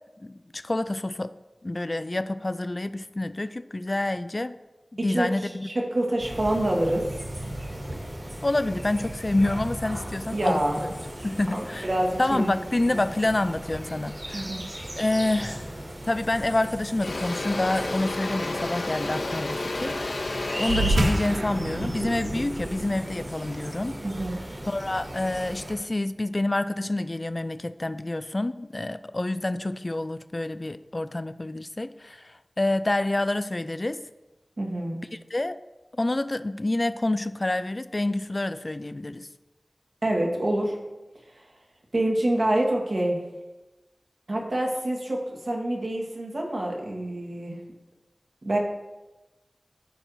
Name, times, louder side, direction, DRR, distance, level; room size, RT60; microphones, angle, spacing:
voice 1, 0.2-1.3 1.6-4.6 5.0-5.7 8.4-10.6 11.2-11.9 12.2-14.5 15.0-15.7 16.1-24.0 24.7-34.0 35.3-35.6 35.9-39.3, left 2 dB, 35° left, 13 dB, 0.3 m, -28 dB
voice 2, 5.6-7.0 10.3-10.8 11.5-12.6 12.9-13.1 14.3-14.6 24.0-24.4 34.6-35.0 40.0-40.8 41.9-43.2 44.3-47.6 48.4-48.6, right 1 dB, 60° right, 0 dB, 1.4 m, -26 dB
sound 1, 6.2-25.7, right 1 dB, 40° right, 2.1 m, -37 dB
Engine / Drill, 16.1-16.3 16.6-22.8, left 2 dB, 85° left, 0.7 m, -32 dB
sound 2, 20.6-25.5, right 1 dB, 80° right, 0.9 m, -30 dB
14.0 x 4.6 x 2.6 m, 1.1 s
wide cardioid pair, 65°, 0 cm